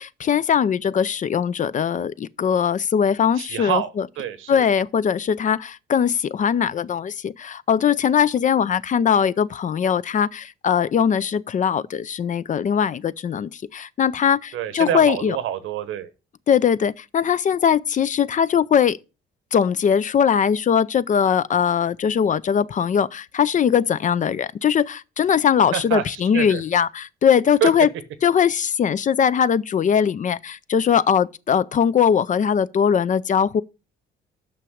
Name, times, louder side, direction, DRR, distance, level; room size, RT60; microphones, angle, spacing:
voice 1, 0.0-4.1 4.5-15.4 16.5-19.0 19.5-27.9 28.2-33.6, left 8 dB, 40° left, 0.4 m, -20 dB
voice 2, 3.4-3.9 4.2-4.7 14.5-16.1 25.7-26.6 27.6-27.7, right 10 dB, 85° right, 1.0 m, -26 dB
6.0 x 6.0 x 6.3 m
cardioid pair, 90°, 20 cm